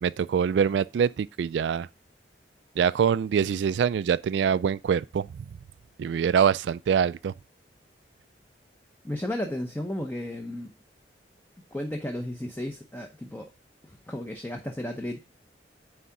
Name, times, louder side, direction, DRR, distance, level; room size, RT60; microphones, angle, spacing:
voice 1, 0.0-1.9 2.8-5.4 6.0-7.3, right 7 dB, 75° right, 0.3 m, -24 dB
voice 2, 9.0-10.7 11.7-13.5 13.9-15.2, left 1 dB, 10° left, 0.7 m, -33 dB
9.4 x 3.7 x 5.7 m
head